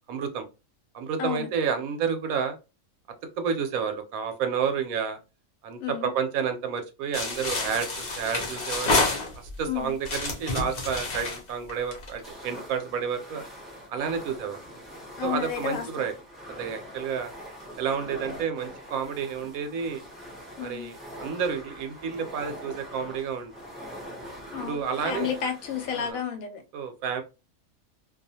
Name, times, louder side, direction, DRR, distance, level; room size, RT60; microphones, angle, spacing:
voice 1, 0.1-0.4 0.9-2.6 3.4-5.2 5.6-9.0 9.6-13.4 13.9-14.6 15.2-16.1 16.6-17.3 17.8-20.0 20.6-23.5 24.6-25.3 25.9-26.2 26.7-27.2, right 6 dB, 80° right, 1.0 m, -30 dB
voice 2, 5.8-6.1 9.6-9.9 15.2-16.1 20.6-20.9 24.5-26.6, left 8 dB, 80° left, 1.1 m, -31 dB
sound 1, 7.1-9.6 10.0-12.3, left 3 dB, 45° left, 0.6 m, -28 dB
sound 2, 12.2-26.1, equal, ahead, 0.5 m, -43 dB
2.4 x 2.3 x 2.6 m
omnidirectional pair, 1.5 m